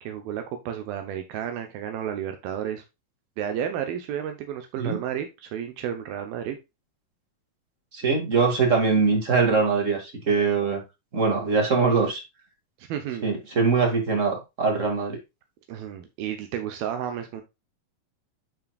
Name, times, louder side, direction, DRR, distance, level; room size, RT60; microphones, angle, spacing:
voice 1, 0.0-2.8 3.4-6.6 12.8-13.3 15.7-17.4, right 9 dB, 80° right, 2.8 m, -32 dB
voice 2, 7.9-10.8 11.1-12.2 13.2-15.2, right 4 dB, 30° right, 1.7 m, -22 dB
9.3 x 5.9 x 2.4 m
omnidirectional pair, 4.2 m